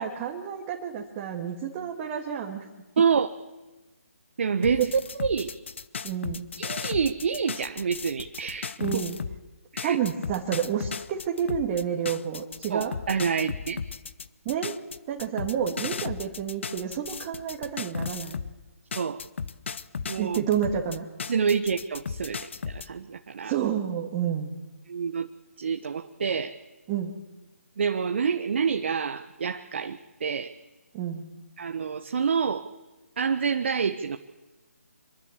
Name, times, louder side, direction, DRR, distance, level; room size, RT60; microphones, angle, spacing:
voice 1, 0.0-2.7 4.8-4.9 6.0-6.5 8.8-9.2 9.8-12.9 14.5-14.8 15.1-18.4 20.2-21.1 23.4-24.6 26.9-27.1 30.9-31.2, right 8 dB, 25° right, 1 dB, 2.2 m, -29 dB
voice 2, 3.0-3.3 4.4-4.9 5.1-5.5 6.6-8.7 9.7-10.0 12.7-13.8 18.9-19.2 20.1-20.4 21.3-23.5 24.9-25.3 25.6-26.6 27.8-30.5 31.6-32.7 33.2-34.2, right 6 dB, 50° right, 7 dB, 1.3 m, -27 dB
sound 1, 4.6-9.4 9.8-18.5 18.9-22.9, left 6 dB, 50° left, 1.1 m, -35 dB
26.0 x 23.0 x 7.5 m, 1.1 s
figure-of-eight pair, 145°, 8 cm